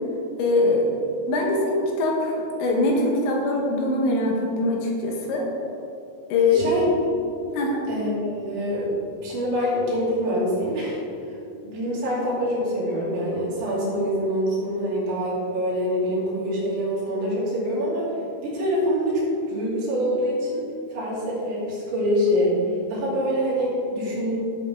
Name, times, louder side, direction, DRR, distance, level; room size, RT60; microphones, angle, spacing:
voice 1, 0.4-5.4 6.3-6.7 7.5-7.8, left 2 dB, 75° left, -1 dB, 3.4 m, -22 dB
voice 2, 6.5-6.9 7.9-8.9 9.2-11.4 11.6-18.1 18.4-20.6 20.9-22.6 22.9-24.4, equal, 70° right, -8 dB, 5.1 m, -25 dB
14.0 x 7.3 x 3.7 m, 2.6 s
omnidirectional pair, 5.5 m